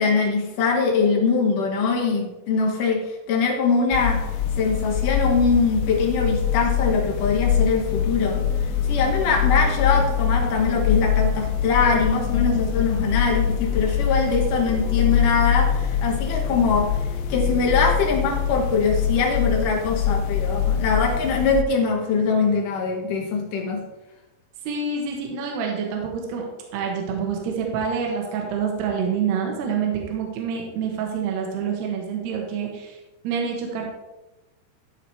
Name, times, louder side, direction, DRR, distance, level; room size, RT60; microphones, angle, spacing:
voice 1, 0.0-4.2 4.6-8.4 8.9-23.9, left 4 dB, 70° left, 1 dB, 2.2 m, -22 dB
sound 1, 3.9-21.6, left 8 dB, 85° left, 2.8 m, -24 dB
sound 2, 7.7-19.6, equal, 15° left, 2.6 m, -41 dB
voice 2, 24.7-26.5 26.7-33.0 33.2-33.9, right 6 dB, 75° right, 0 dB, 3.3 m, -27 dB
13.0 x 4.8 x 4.6 m, 1.0 s
omnidirectional pair, 4.9 m